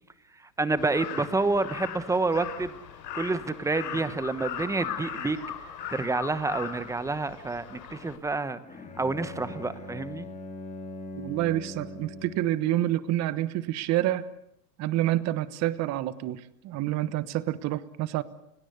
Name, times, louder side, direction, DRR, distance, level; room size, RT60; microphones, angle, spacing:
voice 1, 0.6-2.8 3.1-5.4 5.9-8.6 9.0-10.3, right 3 dB, 5° right, 14 dB, 1.1 m, -28 dB
Crow, 0.8-8.2, left 8 dB, 80° left, 4.5 m, -39 dB
Bowed string instrument, 8.6-12.7, left 2 dB, 15° left, 3.7 m, -41 dB
voice 2, 11.1-14.2 14.8-18.2, right 14 dB, 35° right, 16 dB, 1.2 m, -28 dB
30.0 x 17.0 x 8.2 m, 0.79 s
hypercardioid pair, 130°, 49 cm